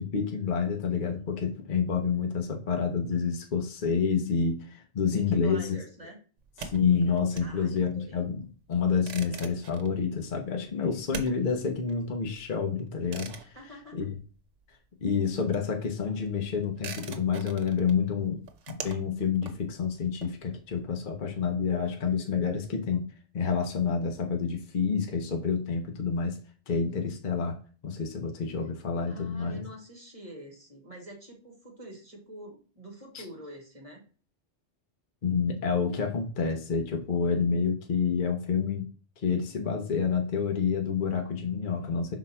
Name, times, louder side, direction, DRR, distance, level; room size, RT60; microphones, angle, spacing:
voice 1, 0.0-5.8 6.6-13.6 13.9-14.2 15.0-23.1 23.3-26.4 26.7-27.6 27.8-29.6 33.1-33.2 35.2-38.9 39.2-42.1, left 6 dB, 45° left, 3 dB, 0.9 m, -28 dB
voice 2, 5.1-6.2 7.4-8.2 13.5-14.0 29.1-34.0, equal, 30° right, -1 dB, 2.1 m, -46 dB
sound 1, 6.4-14.7 15.0-20.8, right 5 dB, 80° right, 1.1 m, -44 dB
5.4 x 4.1 x 4.3 m, 0.39 s
omnidirectional pair, 1.2 m